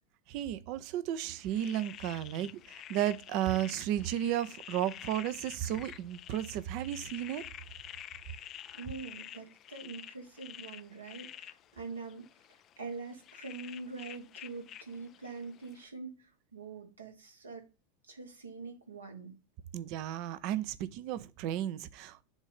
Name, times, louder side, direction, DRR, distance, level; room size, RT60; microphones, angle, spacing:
voice 1, 0.3-7.5 19.7-22.2, right 11 dB, 55° right, 0.6 m, -34 dB
sound 1, 1.3-15.9, left 11 dB, 40° left, 0.4 m, -49 dB
voice 2, 8.4-12.3 12.8-17.7 18.1-19.3, right 4 dB, 85° right, 1.6 m, -44 dB
7.2 x 2.7 x 5.1 m
hypercardioid pair, 85°, 0 cm